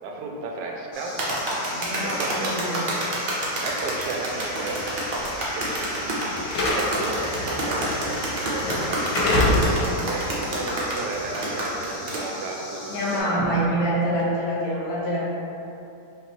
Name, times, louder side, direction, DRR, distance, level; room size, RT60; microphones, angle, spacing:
voice 1, 0.0-1.1 2.0-2.5 3.6-4.8 5.4-6.3 6.6-9.1 9.6-13.0 13.2-13.4, right 3 dB, 80° right, 0 dB, 1.2 m, -33 dB
sound 1, 0.9-13.2, left 1 dB, 45° left, 0.7 m, -39 dB
sound 2, 1.2-12.2, right 1 dB, 55° right, 0.5 m, -28 dB
voice 2, 1.7-2.8 12.9-15.2, right 1 dB, 65° left, -6 dB, 1.1 m, -26 dB
Slam / Alarm, 3.8-11.9, left 1 dB, 90° left, 1.4 m, -28 dB
5.0 x 2.3 x 3.0 m, 2.8 s
omnidirectional pair, 1.8 m